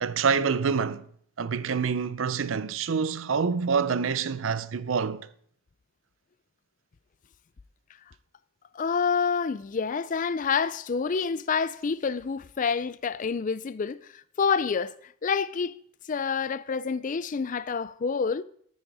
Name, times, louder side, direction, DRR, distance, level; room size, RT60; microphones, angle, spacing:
voice 1, 0.0-1.1 1.4-5.3, right 6 dB, 85° right, 0.5 m, -26 dB
voice 2, 8.7-15.8 16.1-18.4, left 5 dB, 40° left, 0.4 m, -28 dB
13.0 x 6.3 x 4.8 m
head